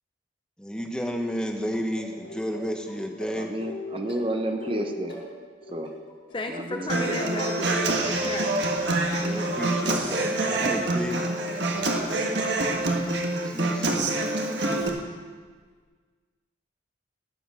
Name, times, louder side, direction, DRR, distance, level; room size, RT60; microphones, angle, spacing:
voice 1, 0.6-3.5 9.1-11.2 13.4-14.2, equal, 5° left, 3 dB, 1.0 m, -32 dB
sound 1, 0.7-0.9 1.3-5.3 5.6-6.4 6.7-12.7 13.2-13.6 14.7-14.8, left 2 dB, 90° left, 4.9 m, -44 dB
voice 2, 3.4-5.2 5.7-5.9 6.5-7.4, right 1 dB, 25° right, 5 dB, 0.9 m, -31 dB
voice 3, 6.3-8.6, left 2 dB, 25° left, 5 dB, 0.5 m, -34 dB
Human voice / Acoustic guitar, 6.9-14.9, right 2 dB, 65° right, 1.5 m, -26 dB
16.5 x 7.9 x 6.3 m, 1.5 s
head